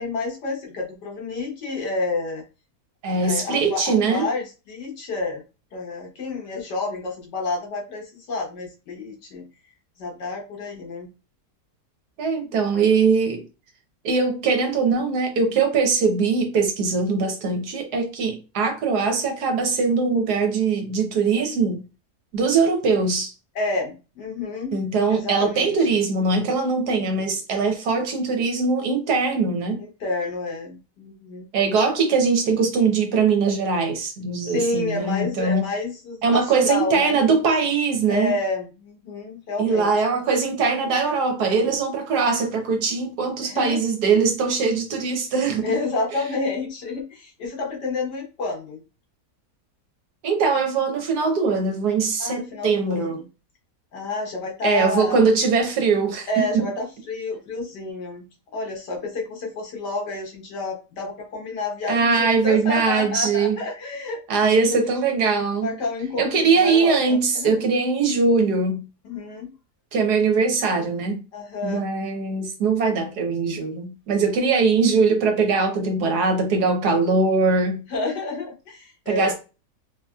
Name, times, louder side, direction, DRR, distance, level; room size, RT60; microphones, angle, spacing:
voice 1, 0.0-2.4 3.1-5.4 5.7-9.5 10.0-11.1 23.6-24.8 25.1-25.8 29.8-31.5 34.4-37.2 38.1-39.9 43.4-43.8 45.6-48.8 52.2-53.3 53.9-55.2 56.3-58.3 58.5-64.2 64.7-64.8 65.6-67.7 69.0-69.5 71.3-71.8 77.9-79.3, left 3 dB, 85° left, 1.8 m, -29 dB
voice 2, 3.0-4.3 12.2-13.4 14.0-21.8 22.3-23.3 24.7-29.8 31.5-35.6 36.2-38.3 39.6-45.8 50.2-53.2 54.6-56.7 61.9-63.6 64.3-65.8 66.2-68.8 69.9-71.2 71.6-77.8 79.1-79.3, right 4 dB, 70° right, 1.4 m, -21 dB
4.1 x 2.9 x 2.3 m
omnidirectional pair, 1.8 m